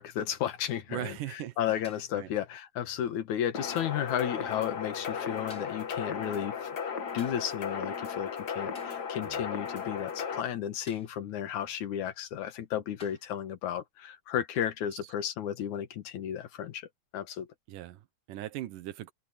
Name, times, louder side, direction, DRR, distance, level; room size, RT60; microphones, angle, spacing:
voice 1, 0.0-6.7 7.1-16.9 17.1-17.5, left 10 dB, 70° left, 2.8 m, -33 dB
voice 2, 0.9-1.8 2.1-2.3 9.2-9.5 15.0-15.1 17.7-19.1, right 14 dB, 90° right, 2.6 m, -40 dB
sound 1, 1.8-2.2 3.7-4.1 5.5-5.9 7.2-7.5 8.7-9.1 10.9-11.2 12.3-12.4 13.0-13.4 14.5-14.8 16.4-16.6, left 2 dB, 15° left, 7.9 m, -54 dB
sound 2, 3.5-10.4, left 6 dB, 45° left, 1.4 m, -36 dB
open air
omnidirectional pair, 3.6 m